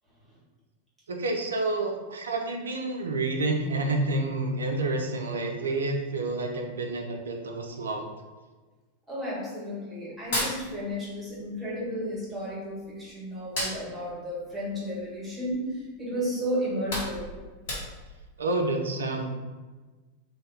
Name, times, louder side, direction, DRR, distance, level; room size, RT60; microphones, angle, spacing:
voice 1, 1.1-8.1 18.4-19.2, right 2 dB, 70° right, 2 dB, 0.4 m, -29 dB
voice 2, 9.1-15.7 16.0-17.2, equal, 10° right, -7 dB, 1.3 m, -33 dB
Hands, 10.1-11.4 11.7-13.0 13.3-15.7 16.1-16.3 16.6-18.2, left 1 dB, 55° left, 1.2 m, -34 dB
2.6 x 2.3 x 3.4 m, 1.3 s
figure-of-eight pair, 90°, 0 cm